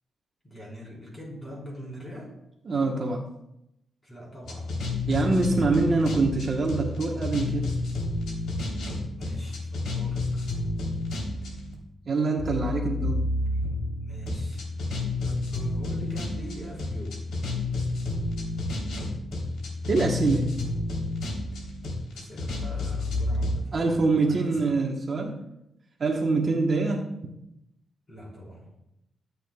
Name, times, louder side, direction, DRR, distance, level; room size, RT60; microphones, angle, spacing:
voice 1, 0.4-2.3 4.0-4.7 9.1-10.5 13.5-13.6 14.0-14.6 15.2-17.3 22.1-24.8 28.1-28.7, equal, 20° left, -4 dB, 4.4 m, -42 dB
voice 2, 2.7-3.2 5.1-7.8 12.1-13.2 19.9-20.5 23.7-25.4 26.0-27.1, right 3 dB, 35° right, 0 dB, 1.2 m, -25 dB
sound 1, 4.4-11.7 12.4-23.6, left 2 dB, 85° left, 3.5 m, -30 dB
22.5 x 8.2 x 2.4 m, 0.83 s
wide cardioid pair, 165°, 0 cm